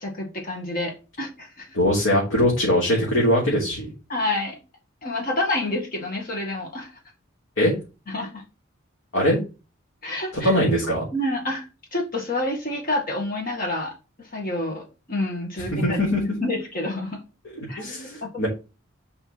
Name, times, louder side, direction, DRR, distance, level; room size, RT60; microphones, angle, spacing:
voice 1, 0.0-1.8 4.1-4.6 5.0-6.9 8.1-8.4 10.0-10.5 11.1-11.6 11.9-16.0 16.4-17.2 17.7-17.8 18.2-18.4, left 2 dB, 45° left, 1 dB, 1.7 m, -28 dB
voice 2, 1.7-3.9 7.6-7.7 9.1-9.4 10.4-11.0 15.7-16.2 17.5-18.5, equal, 70° left, -5 dB, 3.4 m, -21 dB
5.5 x 4.6 x 5.8 m, 0.30 s
head